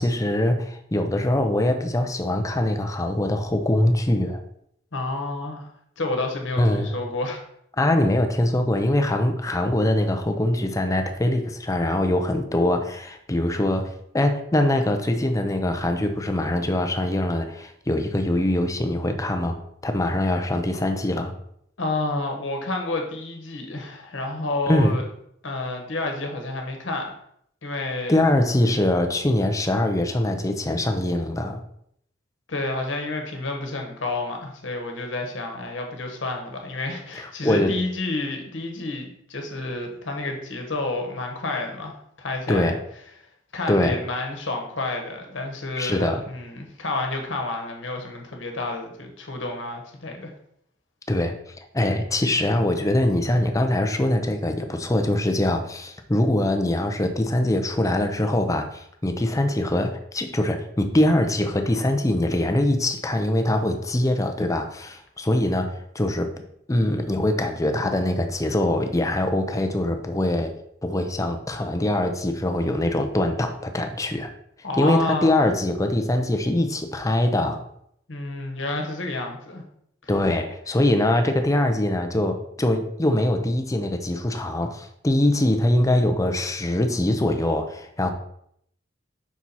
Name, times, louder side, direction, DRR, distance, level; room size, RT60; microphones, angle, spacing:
voice 1, 0.0-4.4 6.6-7.0 7.8-19.6 19.8-21.3 24.7-25.0 28.1-31.6 37.1-37.8 42.5-42.8 43.7-44.0 45.8-46.2 51.1-66.3 66.7-70.5 70.8-74.3 74.8-77.6 80.1-88.1, left 1 dB, 15° left, 5 dB, 0.6 m, -23 dB
voice 2, 4.9-5.7 6.0-7.4 21.8-25.0 25.4-27.1 27.6-28.2 32.5-42.8 43.5-50.3 74.6-75.4 78.1-79.6, left 2 dB, 65° left, 3 dB, 1.2 m, -30 dB
6.0 x 4.4 x 4.1 m, 0.71 s
head